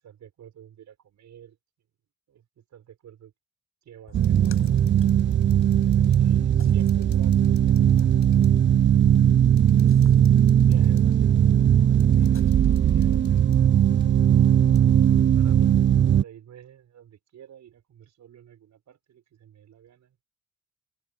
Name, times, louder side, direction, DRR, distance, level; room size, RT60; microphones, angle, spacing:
voice 1, 0.0-1.6 2.3-3.3 3.8-4.8 5.8-8.6 9.7-14.2 15.3-15.8 16.1-20.2, right 10 dB, 65° right, 6.9 m, -50 dB
sound 1, 4.1-6.2 6.5-6.6 6.9-8.6 9.1-9.2 9.6-11.2 12.0-13.6 14.0-14.1 14.8-14.9, left 10 dB, 65° left, 5.5 m, -58 dB
Splash splatter, 4.1-13.0, left 6 dB, 45° left, 6.9 m, -47 dB
sound 2, 4.1-16.2, right 10 dB, 40° right, 0.5 m, -19 dB
cardioid pair, 90°, 30 cm